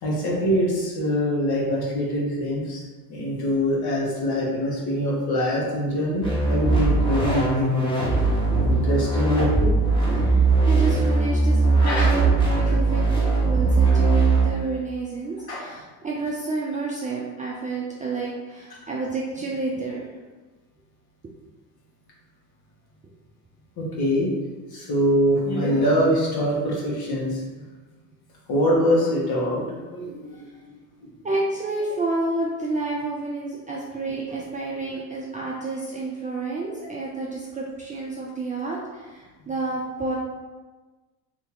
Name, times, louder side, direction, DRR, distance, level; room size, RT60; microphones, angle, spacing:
voice 1, 0.0-2.8 3.1-7.7 8.6-9.7 11.8-12.1 15.5-15.6 23.8-24.3 24.7-27.4 28.5-30.4 30.7-30.8, equal, 50° left, -4 dB, 1.5 m, -24 dB
sound 1, 6.2-14.5, right 3 dB, 10° left, 1.2 m, -20 dB
voice 2, 10.2-20.1 31.2-40.2, right 3 dB, 15° right, -4 dB, 0.4 m, -30 dB
2.9 x 2.7 x 3.8 m, 1.3 s
hypercardioid pair, 75°, 49 cm